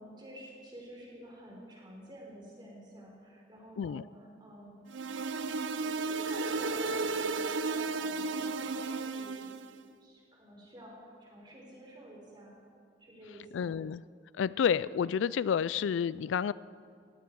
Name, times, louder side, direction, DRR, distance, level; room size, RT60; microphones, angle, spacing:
voice 1, 0.0-4.8 5.2-9.5 10.0-12.6 13.0-13.7, equal, 25° right, -3 dB, 4.3 m, -50 dB
sound 1, 4.9-9.7, right 4 dB, 90° right, 0.6 m, -33 dB
voice 2, 13.5-14.0 14.4-16.5, left 7 dB, 90° left, 19 dB, 0.3 m, -30 dB
19.5 x 15.5 x 4.7 m, 2.3 s
head